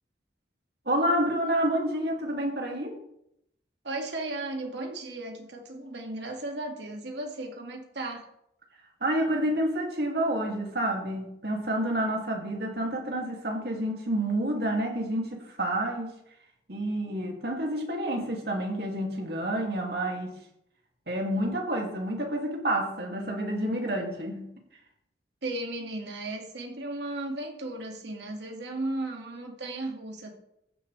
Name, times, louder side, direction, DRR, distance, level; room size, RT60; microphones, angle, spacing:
voice 1, 0.8-3.0 9.0-16.1 16.7-20.4 21.1-24.5, right 1 dB, 65° right, 1 dB, 2.5 m, -29 dB
voice 2, 3.8-8.3 25.4-30.3, right 2 dB, 80° right, 2 dB, 2.0 m, -35 dB
14.5 x 10.0 x 3.4 m, 0.78 s
head